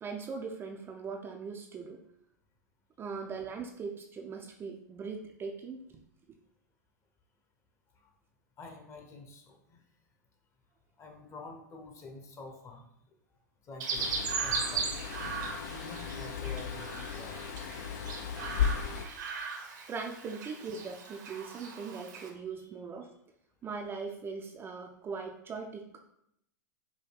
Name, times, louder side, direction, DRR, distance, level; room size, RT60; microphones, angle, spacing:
voice 1, 0.0-2.0 3.0-6.0 19.9-23.1 23.6-26.1, right 5 dB, 20° right, 2 dB, 0.4 m, -40 dB
voice 2, 8.6-9.8 11.0-12.9 13.7-14.9 15.7-17.4 22.6-22.7 23.0-23.1, left 3 dB, 30° left, 3 dB, 0.8 m, -48 dB
Chirp tweet, 13.8-22.3, right 5 dB, 65° right, 0.8 m, -38 dB
sound 1, 14.0-19.0, left 7 dB, 60° left, 0.4 m, -36 dB
4.8 x 2.2 x 3.2 m, 0.74 s
hypercardioid pair, 105°, 10 cm